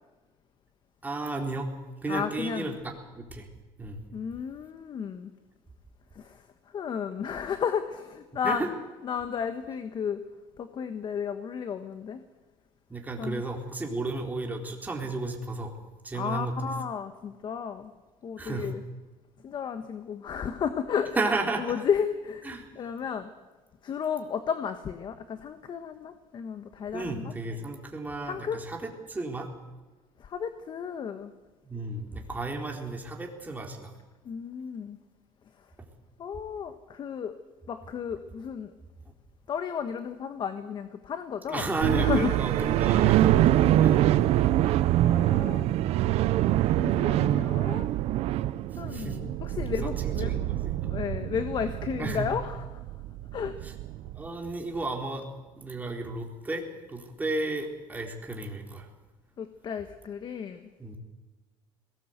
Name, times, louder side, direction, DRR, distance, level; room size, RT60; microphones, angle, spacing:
voice 1, 1.0-1.7 2.0-3.5 3.8-4.0 8.4-8.7 12.9-15.7 16.0-16.5 18.4-18.7 21.2-21.7 22.4-22.7 26.9-29.5 31.7-33.9 41.5-43.4 43.8-44.1 48.8-49.2 49.6-50.9 52.0-52.3 53.6-53.7 54.1-55.2 55.6-58.9 60.8-61.0, right 2 dB, 15° right, 1 dB, 4.0 m, -33 dB
voice 2, 2.1-2.8 4.1-5.3 6.1-6.4 6.7-8.6 9.0-10.2 10.6-12.2 13.2-13.4 16.1-17.9 18.2-18.8 19.4-21.2 21.7-22.5 22.7-23.3 23.8-27.3 28.2-28.6 30.2-31.3 34.2-35.0 36.2-37.3 37.7-38.7 39.5-42.4 43.2-44.1 45.0-45.7 46.8-47.9 48.8-50.4 50.9-52.8 53.3-53.5 59.4-60.6, left 7 dB, 45° left, 9 dB, 1.4 m, -33 dB
sound 1, 41.8-54.3, right 14 dB, 70° right, 0.8 m, -25 dB
21.5 x 18.5 x 8.1 m, 1.2 s
cardioid pair, 120°, 11 cm